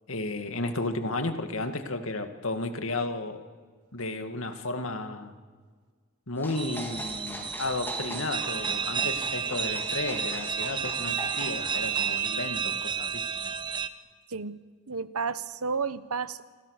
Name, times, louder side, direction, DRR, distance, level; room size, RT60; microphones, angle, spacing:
voice 1, 0.1-3.4 3.9-5.3 6.3-13.2, left 2 dB, 65° left, 7 dB, 2.2 m, -33 dB
sound 1, 6.4-12.2, left 1 dB, 10° left, 3.6 m, -42 dB
sound 2, 6.5-13.9, right 7 dB, 20° right, 0.9 m, -31 dB
voice 2, 14.9-16.4, right 5 dB, 85° right, 14 dB, 1.1 m, -31 dB
28.5 x 25.0 x 6.7 m, 1.6 s
head